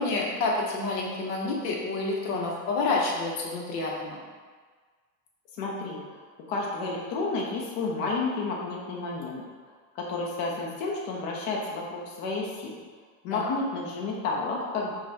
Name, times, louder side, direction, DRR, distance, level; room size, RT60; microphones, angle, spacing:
voice 1, 0.0-4.2 13.3-13.5, left 3 dB, 85° left, -2 dB, 1.0 m, -28 dB
voice 2, 5.6-6.2 6.5-9.4 9.9-12.8 13.2-14.9, left 3 dB, 50° left, -3 dB, 0.8 m, -31 dB
5.2 x 2.5 x 2.8 m, 1.5 s
supercardioid pair, 135°, 46 cm